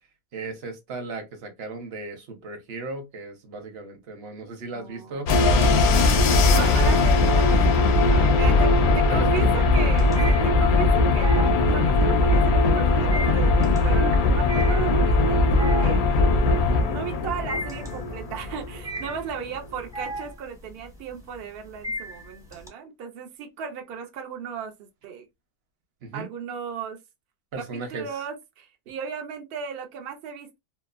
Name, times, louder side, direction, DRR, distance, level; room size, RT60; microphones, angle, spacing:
voice 1, 0.3-5.8 6.5-6.8 8.1-9.6 16.6-16.9 26.0-26.3 27.5-28.1, right 3 dB, 55° right, 0.8 m, -36 dB
voice 2, 4.7-5.6 6.5-16.1 16.9-25.3 26.1-27.0 27.6-30.6, right 7 dB, 70° right, 0.5 m, -36 dB
sound 1, 5.3-19.2, left 3 dB, 65° left, 0.7 m, -20 dB
sound 2, 7.2-7.8 8.2-22.7, equal, 5° right, 0.5 m, -36 dB
2.8 x 2.0 x 2.4 m
omnidirectional pair, 1.5 m